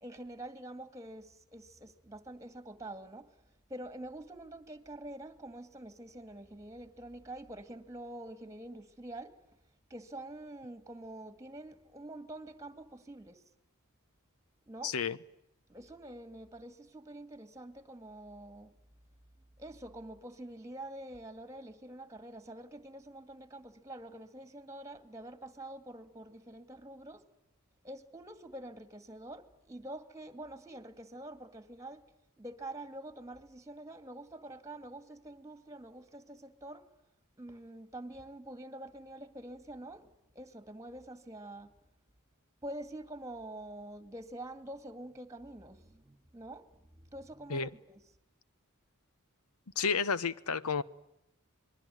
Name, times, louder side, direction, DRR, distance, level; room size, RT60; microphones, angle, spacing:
voice 1, 0.0-3.3 3.7-9.4 9.9-13.4 14.7-14.9 15.7-18.7 19.6-27.2 27.8-32.0 32.4-36.8 37.4-41.7 42.6-48.0, right 1 dB, 15° right, 2.1 m, -46 dB
voice 2, 14.8-15.2 47.5-47.7 49.8-50.8, left 5 dB, 85° left, 1.0 m, -31 dB
27.0 x 21.5 x 9.2 m
head